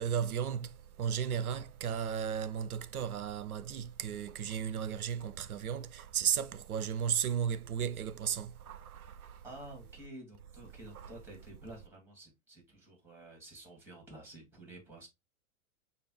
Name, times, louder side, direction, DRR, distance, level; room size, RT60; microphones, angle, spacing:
voice 1, 0.0-9.4 10.9-11.1, right 8 dB, 90° right, 0.5 m, -35 dB
voice 2, 9.1-15.1, right 1 dB, 5° right, 2.3 m, -51 dB
6.5 x 2.5 x 3.1 m
hypercardioid pair, 105°, 42 cm